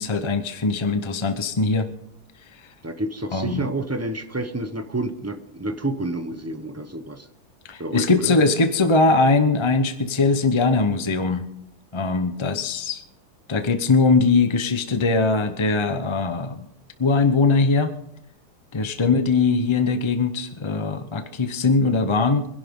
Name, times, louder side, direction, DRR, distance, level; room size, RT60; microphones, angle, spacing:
voice 1, 0.0-1.9 3.3-3.7 7.7-11.5 11.9-13.0 13.5-16.7 17.0-17.9 18.7-22.5, left 3 dB, 25° left, 9 dB, 0.6 m, -21 dB
voice 2, 2.8-7.3 7.8-8.4, right 2 dB, 15° right, 8 dB, 0.7 m, -29 dB
24.5 x 11.5 x 3.7 m, 0.79 s
omnidirectional pair, 1.7 m